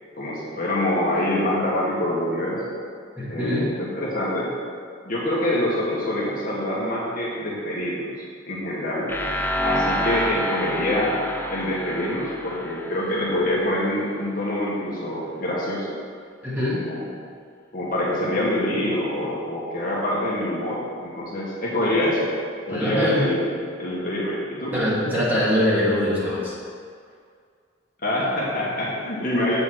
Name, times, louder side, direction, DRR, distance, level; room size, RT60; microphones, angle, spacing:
voice 1, 0.1-2.7 3.3-4.5 5.0-8.1 8.4-9.1 9.6-11.2 11.5-16.0 16.7-17.1 17.7-22.3 22.7-23.5 23.8-24.7 28.0-29.6, left 1 dB, 45° left, -6 dB, 1.5 m, -25 dB
voice 2, 3.2-3.7 16.4-16.8 22.7-23.2 24.7-26.5, left 1 dB, 10° right, -9 dB, 2.3 m, -23 dB
sound 1, 9.1-14.0, equal, 10° left, 0.5 m, -28 dB
7.9 x 5.4 x 6.3 m, 2.2 s
head